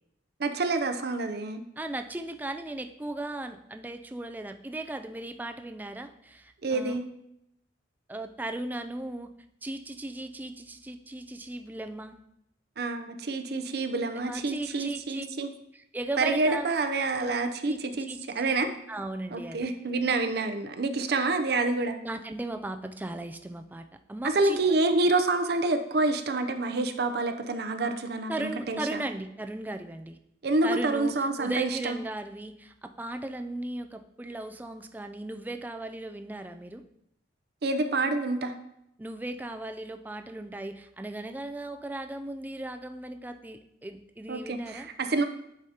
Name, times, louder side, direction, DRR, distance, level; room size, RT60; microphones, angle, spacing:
voice 1, 0.4-1.6 6.6-7.0 12.8-15.5 16.2-18.1 18.3-18.7 19.3-22.0 24.2-29.0 30.4-32.0 37.6-38.5 44.3-45.3, right 3 dB, 60° right, 7 dB, 0.6 m, -27 dB
voice 2, 1.8-7.0 8.1-9.3 9.6-12.2 14.1-15.3 15.7-16.7 17.1-19.7 22.0-24.6 28.3-30.2 30.6-36.8 39.0-44.9, right 1 dB, 10° right, 7 dB, 0.3 m, -37 dB
9.8 x 4.9 x 2.8 m, 0.79 s
head